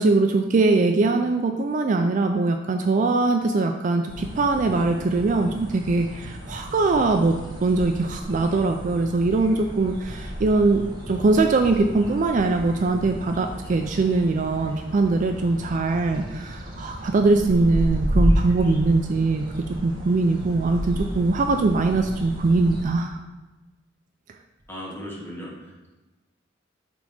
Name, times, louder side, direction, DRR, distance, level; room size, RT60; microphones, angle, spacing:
voice 1, 0.0-7.4 7.6-19.5 19.8-23.2, right 3 dB, 40° right, 5 dB, 0.3 m, -22 dB
sound 1, 4.1-22.8, equal, 25° right, 1.2 m, -32 dB
voice 2, 24.7-25.9, equal, 10° left, -5 dB, 1.4 m, -37 dB
5.2 x 3.9 x 4.8 m, 1.1 s
head